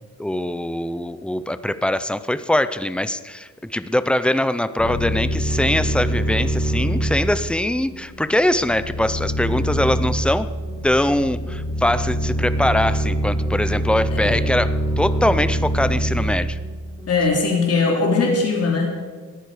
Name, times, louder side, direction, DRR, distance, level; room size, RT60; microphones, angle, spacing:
voice 1, 0.2-10.5 10.8-16.6, left 1 dB, 5° left, 13 dB, 0.5 m, -22 dB
sound 1, 4.8-17.3, right 1 dB, 15° right, 6.1 m, -24 dB
voice 2, 17.1-18.9, left 4 dB, 50° left, 0 dB, 3.2 m, -20 dB
20.5 x 14.0 x 4.9 m, 1.5 s
cardioid pair, 165°, 31 cm